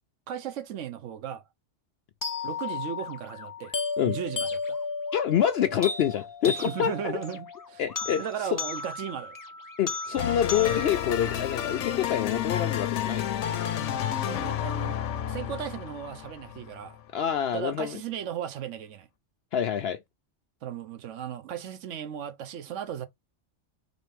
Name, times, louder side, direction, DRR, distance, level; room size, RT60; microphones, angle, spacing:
voice 1, 0.3-1.5 2.4-3.7 4.1-4.8 6.5-7.8 8.2-9.4 14.2-15.0 15.3-17.0 17.5-19.1 20.6-23.1, right 9 dB, 90° right, 1.1 m, -36 dB
sound 1, 2.2-12.2, left 4 dB, 30° left, 0.4 m, -35 dB
voice 2, 5.1-7.1 7.8-8.3 8.5-8.6 9.8-13.3 17.1-18.0 19.5-20.0, left 10 dB, 65° left, 0.7 m, -27 dB
sound 2, 10.2-17.0, left 10 dB, 85° left, 1.0 m, -31 dB
4.1 x 3.4 x 3.3 m
omnidirectional pair, 1.2 m